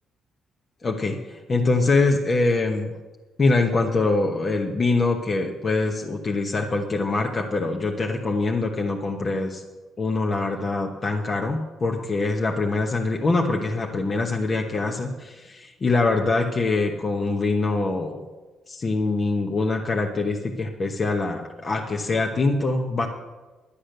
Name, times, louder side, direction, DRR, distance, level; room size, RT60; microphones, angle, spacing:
voice 1, 0.8-2.9 3.4-9.6 10.0-18.2 18.7-23.1, left 3 dB, 40° left, 1 dB, 1.1 m, -24 dB
11.5 x 8.6 x 6.6 m, 1.2 s
cardioid pair, 90°, 0 cm